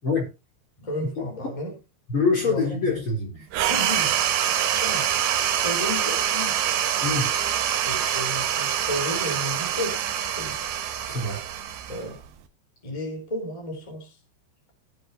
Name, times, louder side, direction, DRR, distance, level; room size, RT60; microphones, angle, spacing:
voice 1, 0.8-1.7 2.4-2.8 3.7-4.2 4.6-5.1 5.5-6.6 7.8-10.6 11.9-12.2 12.8-14.2, left 1 dB, 10° left, 3.4 m, -33 dB
voice 2, 2.1-3.5 7.0-7.3 11.1-11.4, left 4 dB, 30° left, 4.3 m, -25 dB
sound 1, 3.5-12.4, right 10 dB, 65° right, 2.8 m, -25 dB
18.0 x 7.9 x 2.8 m
omnidirectional pair, 5.2 m